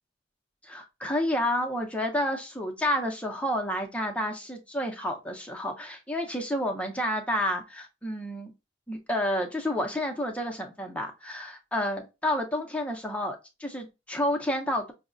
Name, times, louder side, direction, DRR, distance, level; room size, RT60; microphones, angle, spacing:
voice 1, 0.6-8.5 8.9-14.9, left 1 dB, 5° left, 0.5 m, -30 dB
5.4 x 2.0 x 2.4 m
head